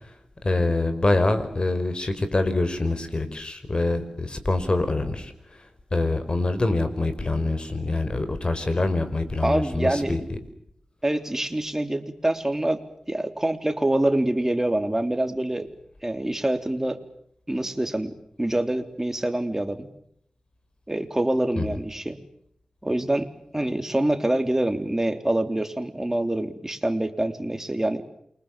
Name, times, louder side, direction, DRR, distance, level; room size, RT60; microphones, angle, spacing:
voice 1, 0.4-5.3 5.9-10.2 21.6-21.7, left 2 dB, 45° left, 10 dB, 5.4 m, -25 dB
voice 2, 9.4-10.2 11.0-12.8 13.1-15.7 16.0-17.0 17.5-19.9 20.9-22.2 22.8-28.1, right 1 dB, 20° right, 7 dB, 3.5 m, -25 dB
29.0 x 24.5 x 7.6 m, 0.69 s
wide cardioid pair, 60°, 2 cm